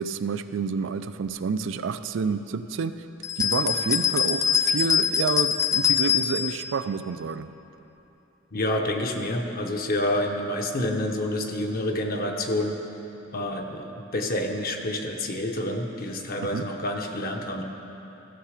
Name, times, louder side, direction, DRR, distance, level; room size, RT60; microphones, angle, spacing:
voice 1, 0.0-3.0 3.4-7.5 16.4-16.7, right 5 dB, 70° right, 11 dB, 0.4 m, -29 dB
sound 1, 3.2-6.6, left 8 dB, 15° left, 0.3 m, -23 dB
voice 2, 8.5-12.8 13.3-17.6, left 1 dB, 50° left, 2 dB, 0.8 m, -28 dB
14.5 x 6.7 x 4.9 m, 3.0 s
head